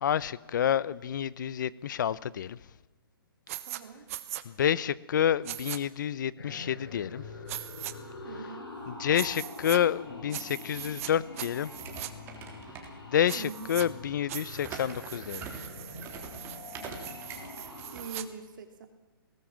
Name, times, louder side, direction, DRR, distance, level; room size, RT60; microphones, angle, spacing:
voice 1, 0.0-2.6 4.5-7.2 8.9-11.7 13.1-15.4, left 9 dB, 55° left, 0.8 m, -29 dB
sound 1, 3.5-3.8 4.1-4.4 5.4-5.8 7.5-7.9 9.1-9.8 10.3-11.1 11.4-12.1 13.3-13.9 14.3-18.2, right 14 dB, 35° right, 1.2 m, -40 dB
voice 2, 3.7-4.0 8.2-8.7 13.3-13.8 17.9-18.9, right 5 dB, 55° right, 2.9 m, -43 dB
sound 2, 6.4-18.1, left 3 dB, 75° left, 6.4 m, -45 dB
sound 3, 11.7-13.4 14.6-18.1, right 6 dB, 20° right, 3.4 m, -44 dB
22.0 x 18.5 x 7.5 m
hypercardioid pair, 150°, 13 cm